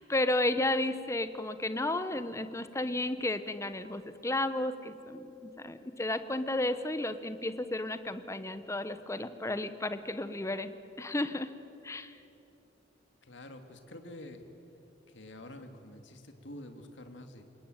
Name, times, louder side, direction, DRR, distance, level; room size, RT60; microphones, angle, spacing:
voice 1, 0.0-10.7 11.0-11.5 11.8-12.2, left 1 dB, 15° left, 11 dB, 1.0 m, -33 dB
voice 2, 13.2-14.5 15.1-17.4, left 1 dB, 80° left, 6 dB, 2.1 m, -47 dB
28.0 x 20.5 x 9.1 m, 2.9 s
head